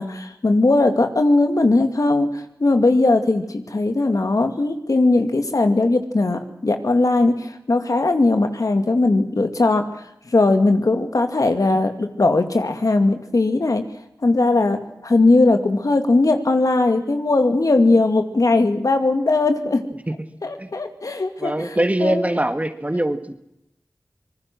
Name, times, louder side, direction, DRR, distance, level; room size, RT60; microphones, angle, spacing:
voice 1, 0.0-9.9 10.3-13.8 14.2-19.9 20.4-21.8 22.0-22.3, left 2 dB, 65° left, 7 dB, 2.3 m, -19 dB
voice 2, 21.4-23.3, right 1 dB, 25° right, 9 dB, 1.8 m, -22 dB
26.0 x 20.0 x 6.2 m, 0.81 s
wide cardioid pair, 45°, 6 cm